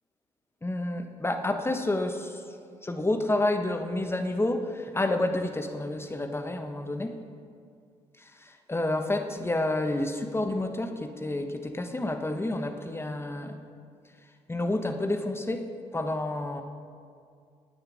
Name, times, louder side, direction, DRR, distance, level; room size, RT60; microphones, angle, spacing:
voice 1, 0.6-2.4 2.8-7.2 8.4-13.6 14.5-15.7 15.9-16.6, left 2 dB, 15° left, 6 dB, 1.2 m, -29 dB
22.5 x 9.4 x 3.6 m, 2.3 s
figure-of-eight pair, 45°, 16 cm